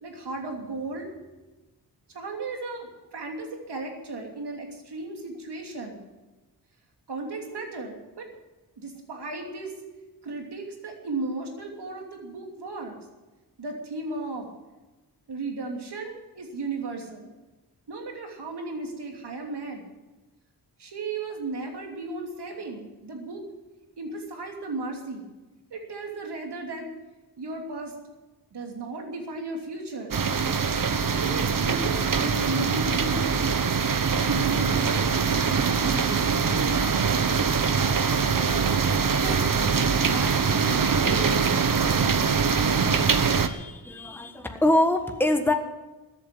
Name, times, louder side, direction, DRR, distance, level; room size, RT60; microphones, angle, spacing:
voice 1, 0.0-1.1 2.1-6.0 7.1-8.3 8.8-9.8 10.2-13.0 13.6-14.5 15.3-17.3 17.9-19.9 20.8-23.4 24.0-25.3 25.7-26.9 27.4-28.0 28.5-30.2 31.1-33.3 34.1-34.8 35.2-37.3 37.8-39.5 39.9-41.5, right 3 dB, 85° right, 2 dB, 3.0 m, -35 dB
sound 1, 30.1-43.5, right 5 dB, 55° right, 1.1 m, -23 dB
voice 2, 43.4-45.5, left 1 dB, 5° left, 5 dB, 1.3 m, -24 dB
14.0 x 8.3 x 9.7 m, 1.1 s
wide cardioid pair, 75°, 39 cm